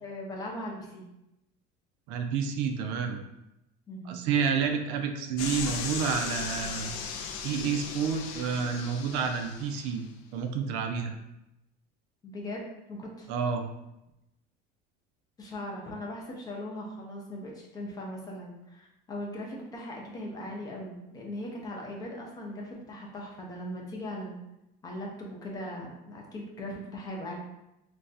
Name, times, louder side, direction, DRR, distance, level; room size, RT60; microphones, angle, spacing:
voice 1, 0.0-1.1 3.9-4.2 12.2-12.6 12.9-13.3 15.4-24.4 24.8-27.4, left 1 dB, 20° left, -1 dB, 0.4 m, -39 dB
voice 2, 2.1-3.2 4.1-6.9 7.4-10.1 10.3-11.2 13.3-13.7, right 6 dB, 70° right, 5 dB, 0.4 m, -29 dB
sound 1, 5.4-10.0, left 6 dB, 80° left, 0.4 m, -37 dB
2.4 x 2.3 x 3.9 m, 0.90 s
cardioid pair, 175°, 20 cm